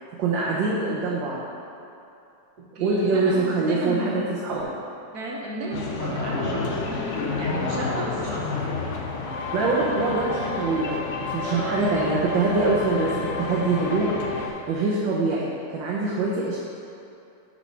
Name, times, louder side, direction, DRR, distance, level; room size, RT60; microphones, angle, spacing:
voice 1, 0.2-1.4 2.8-4.7 9.5-14.1 14.7-15.5 15.7-16.6, right 3 dB, 85° right, -5 dB, 1.5 m, -24 dB
voice 2, 2.7-4.1 5.1-8.6 11.4-11.8, right 2 dB, 60° right, -3 dB, 1.6 m, -33 dB
sound 1, 5.7-14.5, left 4 dB, 65° left, 0.7 m, -29 dB
7.3 x 4.2 x 5.5 m, 2.7 s
omnidirectional pair, 2.0 m